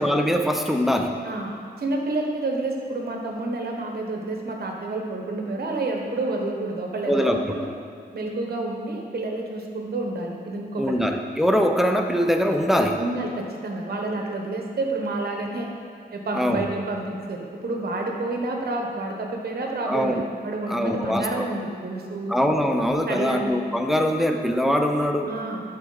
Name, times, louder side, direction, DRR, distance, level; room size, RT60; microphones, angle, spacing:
voice 1, 0.0-1.2 7.0-7.6 10.8-13.0 16.3-16.7 19.9-20.2 20.7-21.4 22.3-25.3, equal, ahead, 4 dB, 0.6 m, -22 dB
voice 2, 1.2-7.7 8.1-10.9 12.9-15.7 16.1-22.3 23.1-23.6 25.3-25.6, right 2 dB, 60° right, 1 dB, 1.2 m, -29 dB
11.0 x 4.3 x 4.0 m, 2.3 s
cardioid pair, 85°, 18 cm